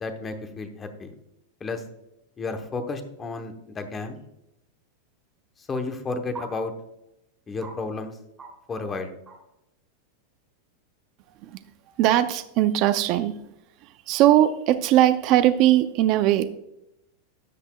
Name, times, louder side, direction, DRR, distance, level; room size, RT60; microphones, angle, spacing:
voice 1, 0.0-1.1 1.6-1.8 2.4-4.2 5.7-6.7 7.5-8.1 8.7-9.1, left 3 dB, 15° left, 0.8 m, -32 dB
sound 1, 4.2-4.3 6.3-6.5 7.0-7.1 7.6-7.7 8.4-8.5 8.7-8.9 9.3-9.5, right 3 dB, 10° right, 2.7 m, -40 dB
voice 2, 12.0-13.5 13.8-16.5, right 13 dB, 35° right, 0.4 m, -20 dB
13.0 x 8.0 x 2.2 m
supercardioid pair, 175°, 0 cm